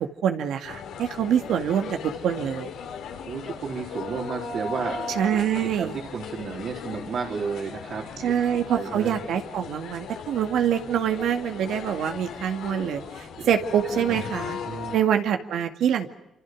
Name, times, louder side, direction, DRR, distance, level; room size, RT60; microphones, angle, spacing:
voice 1, 0.2-2.7 5.2-5.9 8.2-14.6 14.9-16.1, right 9 dB, 80° right, 5 dB, 2.1 m, -25 dB
sound 1, 0.6-15.0, left 5 dB, 85° left, 5.1 m, -37 dB
voice 2, 3.3-5.0 5.6-9.3 13.1-13.6 13.9-14.2 14.6-15.0, right 5 dB, 60° right, 0 dB, 4.2 m, -33 dB
27.0 x 26.5 x 6.3 m, 0.91 s
cardioid pair, 90°, 0 cm